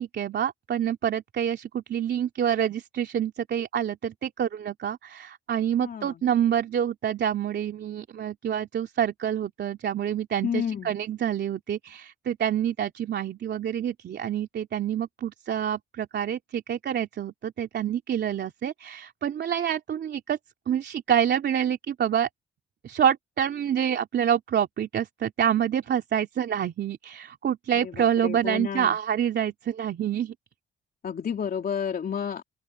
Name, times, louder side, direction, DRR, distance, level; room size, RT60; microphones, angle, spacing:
voice 1, 0.0-20.4 20.7-22.3 22.8-30.3, right 9 dB, 60° right, 3.1 m, -27 dB
voice 2, 5.8-6.2 10.4-11.0 27.8-29.0 31.0-32.4, left 7 dB, 50° left, 3.1 m, -31 dB
open air
cardioid pair, 90°, 20 cm